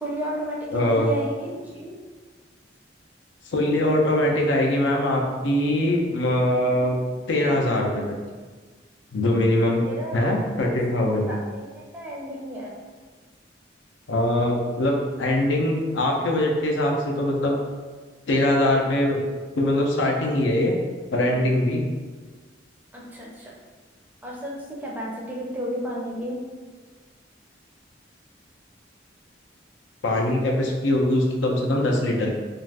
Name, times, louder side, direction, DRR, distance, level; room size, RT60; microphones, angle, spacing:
voice 1, 0.0-2.0 9.8-10.8 11.3-12.7 22.9-23.5 24.2-26.4, right 1 dB, 10° right, -4 dB, 0.4 m, -32 dB
voice 2, 0.7-1.1 3.5-7.0 7.3-8.0 9.1-9.8 10.1-11.3 14.1-17.6 18.3-19.2 19.5-20.7 21.1-21.8 30.0-32.3, left 1 dB, 85° left, 0 dB, 0.5 m, -22 dB
2.4 x 2.4 x 3.3 m, 1.4 s
head